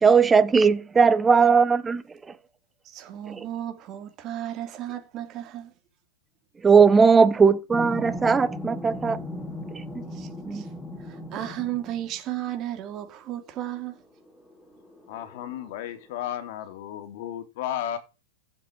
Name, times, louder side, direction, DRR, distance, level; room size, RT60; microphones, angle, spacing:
voice 1, 0.0-2.0 3.4-3.5 6.6-9.2 9.9-10.0 10.4-10.6, right 5 dB, 10° right, 1.0 m, -18 dB
voice 2, 2.8-5.7 10.1-10.7 11.0-14.0, right 12 dB, 30° right, 3.1 m, -34 dB
sound 1, 7.7-12.2 13.5-13.6 14.0-16.0, left 1 dB, 10° left, 7.3 m, -37 dB
voice 3, 15.1-18.0, left 10 dB, 50° left, 3.0 m, -33 dB
15.0 x 7.9 x 4.6 m
hypercardioid pair, 135°, 0 cm